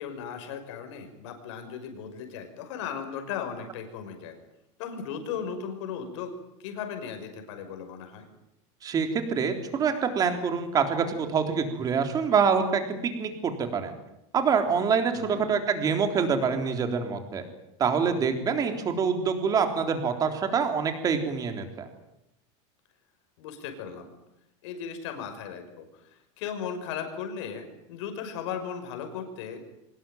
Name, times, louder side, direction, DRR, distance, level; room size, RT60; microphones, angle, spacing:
voice 1, 0.0-4.4 4.8-6.3 6.6-8.3 15.1-15.4 23.4-24.1 24.6-29.7, left 7 dB, 65° left, 6 dB, 6.0 m, -37 dB
voice 2, 8.8-13.9 14.3-17.4 17.8-21.9, right 6 dB, 25° right, 6 dB, 3.7 m, -26 dB
24.5 x 21.0 x 9.2 m, 0.83 s
supercardioid pair, 160°, 16 cm